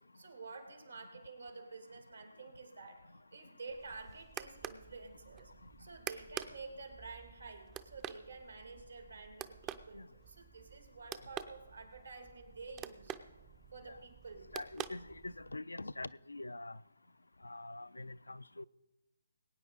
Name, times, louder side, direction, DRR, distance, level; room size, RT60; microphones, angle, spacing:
voice 1, 0.1-5.5 5.8-13.2 13.7-14.6, right 4 dB, 80° right, 2.3 m, -50 dB
sound 1, 3.7-15.6, right 10 dB, 20° right, 0.5 m, -48 dB
voice 2, 14.5-16.8 17.4-18.6, left 2 dB, 85° left, 0.3 m, -44 dB
21.5 x 9.1 x 3.9 m
figure-of-eight pair, 145°, 0 cm